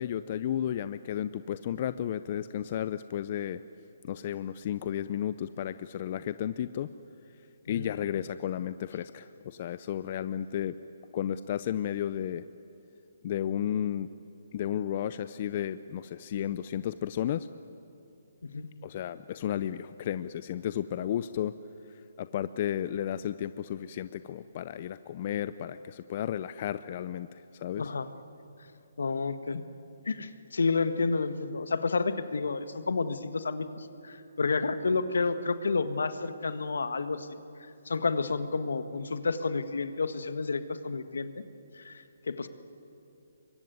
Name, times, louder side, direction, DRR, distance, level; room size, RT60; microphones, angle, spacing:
voice 1, 0.0-6.9 7.7-10.7 11.1-12.5 13.2-14.1 14.5-17.5 18.8-21.5 22.2-27.9, left 10 dB, 40° left, 14 dB, 0.6 m, -33 dB
voice 2, 27.8-28.1 29.0-29.7 30.0-37.3 37.8-41.4 41.7-42.5, left 4 dB, 80° left, 11 dB, 1.5 m, -30 dB
24.5 x 22.5 x 9.5 m, 2.8 s
hypercardioid pair, 150°, 0 cm